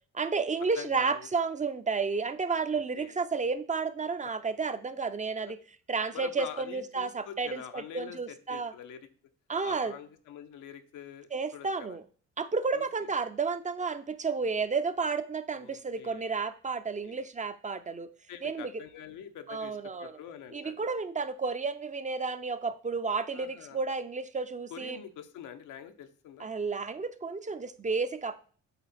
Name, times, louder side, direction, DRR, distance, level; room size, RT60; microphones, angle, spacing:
voice 1, 0.1-5.6 5.9-8.7 9.5-10.0 11.3-12.0 12.4-18.1 18.4-18.8 19.5-20.1 20.5-25.0 26.4-28.4, right 4 dB, 25° right, 11 dB, 0.5 m, -32 dB
voice 2, 0.8-1.3 3.0-3.2 6.1-9.1 9.6-12.0 12.7-13.1 15.5-16.4 17.0-17.2 18.3-20.8 23.3-23.8 24.7-26.5, left 9 dB, 85° left, 8 dB, 0.9 m, -45 dB
8.1 x 3.8 x 4.2 m, 0.43 s
cardioid pair, 90°, 30 cm